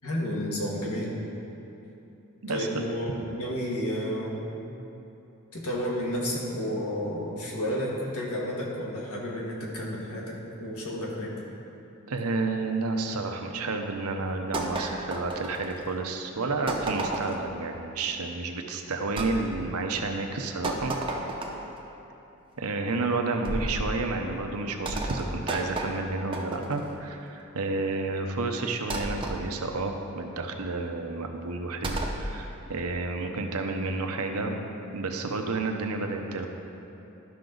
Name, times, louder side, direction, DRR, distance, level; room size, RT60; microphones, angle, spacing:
voice 1, 0.0-1.1 2.5-3.1 3.4-4.5 5.5-11.3, equal, 75° left, -3 dB, 1.7 m, -31 dB
voice 2, 2.4-2.8 12.1-20.9 22.6-34.6 34.9-36.5, right 3 dB, 80° right, 4 dB, 0.8 m, -31 dB
sound 1, 14.5-16.0 16.7-17.5 19.2-19.4 20.6-21.8 23.5-23.9 24.9-27.0 28.9-29.4 31.8-32.2, right 2 dB, 25° right, 0.7 m, -32 dB
12.0 x 5.9 x 3.9 m, 2.9 s
head